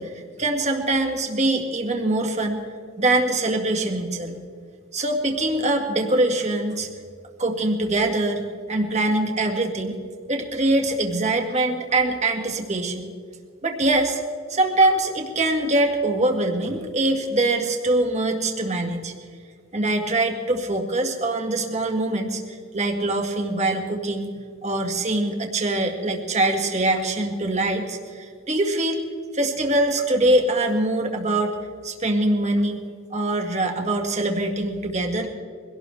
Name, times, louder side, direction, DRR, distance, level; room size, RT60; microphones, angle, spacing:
voice 1, 0.0-2.6 3.0-4.4 4.9-6.9 7.4-9.9 10.3-13.1 13.6-14.2 14.5-19.1 19.7-24.3 24.6-29.0 29.3-31.6 31.8-35.3, right 2 dB, 35° right, 3 dB, 2.0 m, -23 dB
23.5 x 18.0 x 3.5 m, 2.2 s
head